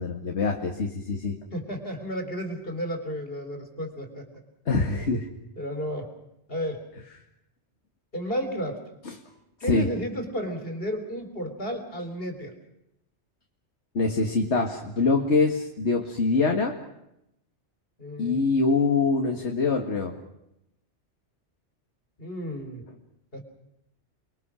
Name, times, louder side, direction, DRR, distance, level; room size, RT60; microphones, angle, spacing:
voice 1, 0.0-1.4 4.7-5.3 9.1-9.2 9.7-9.9 13.9-16.8 18.2-20.1, left 3 dB, 65° left, 2 dB, 2.2 m, -24 dB
voice 2, 1.5-4.3 5.6-6.1 6.5-6.8 8.1-8.8 9.6-12.5 18.0-18.4 22.2-22.9 23.3-23.4, equal, 50° left, 6 dB, 4.2 m, -32 dB
29.0 x 23.0 x 6.3 m, 0.84 s
omnidirectional pair, 1.2 m